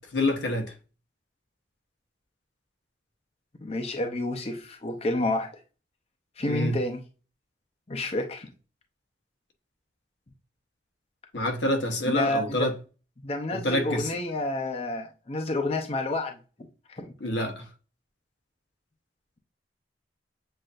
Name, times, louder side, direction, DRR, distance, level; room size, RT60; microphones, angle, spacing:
voice 1, 0.1-0.7 6.4-6.8 11.3-12.7 13.5-14.1 17.2-17.7, left 1 dB, 90° left, 1.0 m, -27 dB
voice 2, 3.6-5.5 6.4-7.0 7.9-8.5 12.0-12.7 13.2-16.4 16.9-17.1, left 2 dB, 35° left, 0.6 m, -29 dB
7.6 x 2.6 x 2.5 m
head